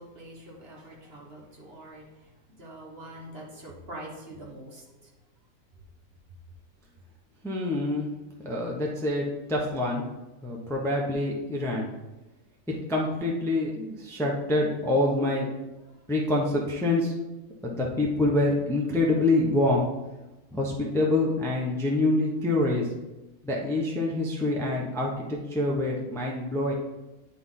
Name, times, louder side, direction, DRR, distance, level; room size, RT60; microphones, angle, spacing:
voice 1, 0.0-2.1 2.5-5.1, right 1 dB, 45° right, -2 dB, 1.4 m, -44 dB
voice 2, 7.4-8.1 8.4-10.0 10.4-11.9 12.7-15.5 16.1-17.1 17.6-19.9 20.5-22.9 23.4-26.7, left 2 dB, ahead, -2 dB, 0.8 m, -26 dB
10.0 x 4.3 x 3.8 m, 1.0 s
omnidirectional pair, 1.6 m